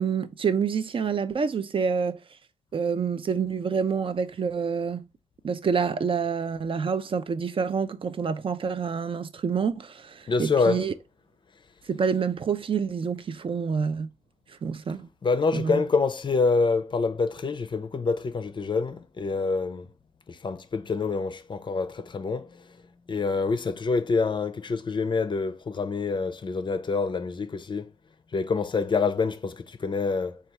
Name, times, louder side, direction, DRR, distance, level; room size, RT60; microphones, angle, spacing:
voice 1, 0.0-2.2 2.7-5.1 5.4-10.9 11.9-14.1 14.6-15.1 15.5-15.8, right 6 dB, 50° right, 0.4 m, -27 dB
voice 2, 10.3-10.9 15.2-19.9 20.3-22.6 23.1-27.9 28.3-30.4, left 4 dB, 40° left, 0.4 m, -26 dB
3.4 x 2.3 x 4.2 m
cardioid pair, 60°, 12 cm